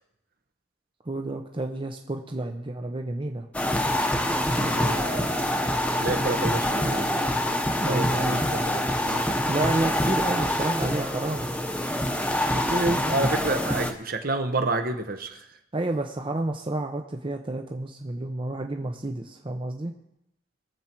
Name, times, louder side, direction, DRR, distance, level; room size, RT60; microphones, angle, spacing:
voice 1, 1.1-3.5 4.5-4.7 7.8-8.4 9.5-11.5 12.9-13.2 15.7-19.9, right 2 dB, 30° right, 4 dB, 0.7 m, -30 dB
sound 1, 3.5-13.9, left 1 dB, 5° left, 1.0 m, -26 dB
voice 2, 4.3-5.5 5.9-7.3 7.7-9.4 12.3-15.4, right 2 dB, 50° right, 7 dB, 1.0 m, -30 dB
21.5 x 7.4 x 4.5 m, 0.84 s
head